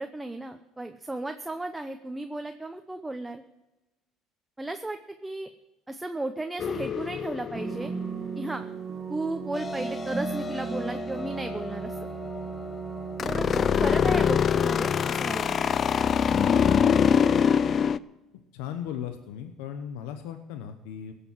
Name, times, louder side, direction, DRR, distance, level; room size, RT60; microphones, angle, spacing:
voice 1, 0.0-3.4 4.6-5.5 5.9-7.9 8.3-8.6 9.1-12.0 13.2-15.5, right 2 dB, 10° right, 6 dB, 0.8 m, -34 dB
sound 1, 6.6-8.2 13.2-18.0, left 7 dB, 45° left, 0.4 m, -23 dB
sound 2, 7.6-13.8, right 6 dB, 30° right, 1.7 m, -36 dB
sound 3, 9.5-15.1, left 5 dB, 25° left, 0.9 m, -40 dB
voice 2, 18.5-21.1, left 9 dB, 85° left, 7 dB, 0.9 m, -37 dB
16.5 x 6.9 x 7.4 m, 1.0 s
supercardioid pair, 80°, 0 cm